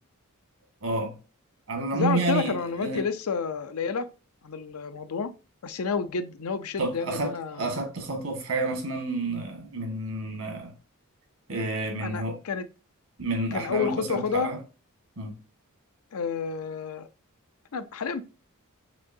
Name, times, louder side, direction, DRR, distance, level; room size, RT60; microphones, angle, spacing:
voice 1, 0.8-1.2 1.7-3.0 6.8-10.7 11.5-12.4 13.2-14.6 15.2-15.4, right 2 dB, 75° right, 1.6 m, -30 dB
voice 2, 1.9-4.1 4.4-5.3 5.6-7.7 12.0-12.7 13.5-14.5 16.1-17.1 17.7-18.2, left 5 dB, 75° left, 0.5 m, -30 dB
6.1 x 2.8 x 2.6 m
head